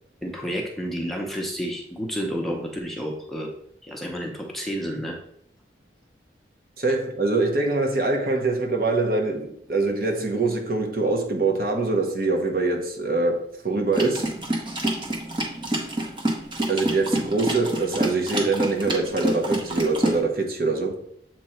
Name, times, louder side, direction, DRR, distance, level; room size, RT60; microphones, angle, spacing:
voice 1, 0.2-3.5 3.8-5.2, equal, ahead, 0.7 m, -30 dB
voice 2, 6.8-14.3 16.7-21.0, right 3 dB, 55° right, 1.0 m, -24 dB
sound 1, 13.9-20.2, right 1 dB, 25° right, 1.0 m, -27 dB
7.6 x 3.0 x 4.4 m
head